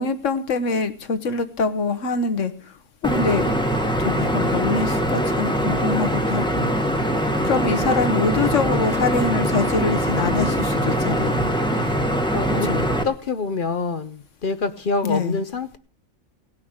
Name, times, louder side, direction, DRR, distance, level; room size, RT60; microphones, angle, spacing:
voice 1, 0.0-2.7 3.0-3.6 4.0-6.7 7.4-11.5 12.7-12.8 15.0-15.4, left 4 dB, 65° left, 1.4 m, -24 dB
sound 1, 3.0-13.0, equal, 5° left, 1.2 m, -22 dB
voice 2, 12.3-12.7 13.0-15.8, left 4 dB, 45° left, 0.8 m, -26 dB
17.5 x 5.9 x 8.7 m
omnidirectional pair, 1.4 m